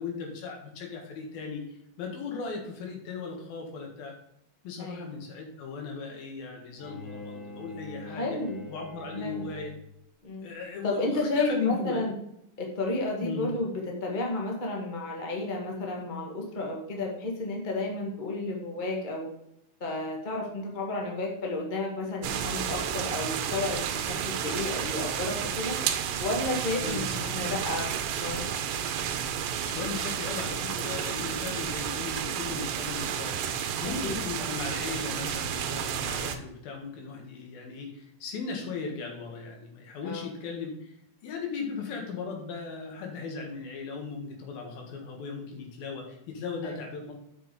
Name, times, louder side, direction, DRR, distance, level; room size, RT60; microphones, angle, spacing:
voice 1, 0.0-1.7 2.0-4.1 4.6-8.4 8.7-9.7 10.4-12.0 13.2-13.5 26.7-27.5 29.6-41.0 41.2-47.1, left 5 dB, 80° left, 1 dB, 3.5 m, -37 dB
voice 2, 4.8-5.1 8.0-8.6 9.1-9.5 10.2-10.5 10.8-12.1 12.6-19.3 19.8-25.8 26.2-28.4 33.8-34.2 40.0-40.3 46.6-46.7, left 2 dB, 35° left, -1 dB, 0.7 m, -32 dB
Bowed string instrument, 6.8-10.0, left 2 dB, ahead, 1.8 m, -43 dB
sound 1, 22.2-36.4, right 8 dB, 75° right, 2.2 m, -31 dB
6.7 x 6.1 x 5.3 m, 0.76 s
omnidirectional pair, 4.1 m